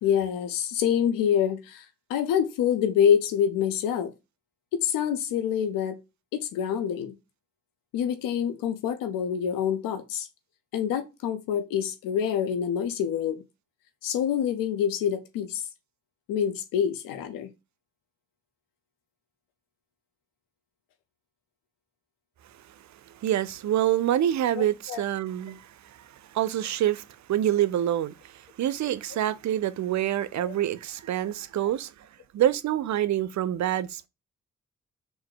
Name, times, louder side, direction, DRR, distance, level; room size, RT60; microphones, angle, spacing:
voice 1, 0.0-4.1 4.7-6.0 6.3-7.1 7.9-10.3 10.7-13.4 14.0-15.6 16.3-17.5 24.5-25.0 30.3-30.5, left 8 dB, 90° left, 0.5 m, -26 dB
voice 2, 23.1-32.1 32.3-34.1, right 11 dB, 60° right, 0.4 m, -27 dB
3.8 x 2.6 x 4.5 m
supercardioid pair, 40°, 33 cm